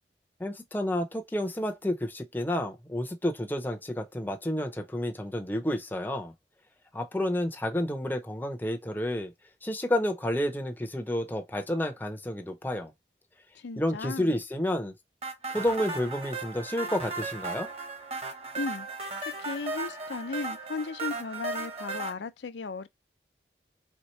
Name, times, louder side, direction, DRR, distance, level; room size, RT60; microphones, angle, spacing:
voice 1, 0.4-6.3 6.9-9.3 9.6-12.9 13.8-14.9 15.5-17.7, left 1 dB, 10° left, 0.6 m, -30 dB
voice 2, 13.5-14.3 18.6-18.9 19.4-22.9, left 4 dB, 85° left, 0.5 m, -36 dB
sound 1, 15.2-22.1, right 3 dB, 35° right, 1.1 m, -36 dB
4.4 x 3.6 x 3.0 m
head